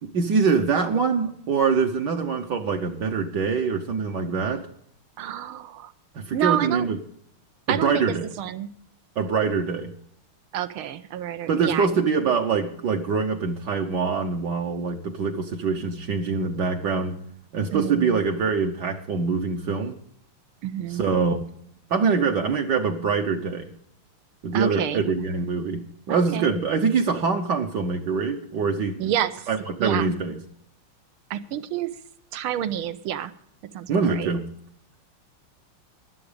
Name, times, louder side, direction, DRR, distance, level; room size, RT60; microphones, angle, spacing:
voice 1, 0.0-4.7 6.1-7.0 7.7-8.3 9.2-9.9 11.5-17.2 17.5-20.0 20.9-21.5 21.9-23.7 24.4-29.1 29.5-30.4 33.9-34.4, right 5 dB, 60° right, 3 dB, 1.4 m, -24 dB
voice 2, 5.2-5.9 6.3-6.9 7.7-8.7 10.5-12.0 17.7-18.2 20.6-21.1 24.5-25.1 26.1-26.5 29.0-29.5 29.8-30.1 31.3-31.9 32.3-33.3 33.7-34.3, right 11 dB, 80° right, 13 dB, 1.7 m, -29 dB
15.5 x 11.0 x 5.0 m, 0.68 s
omnidirectional pair, 2.3 m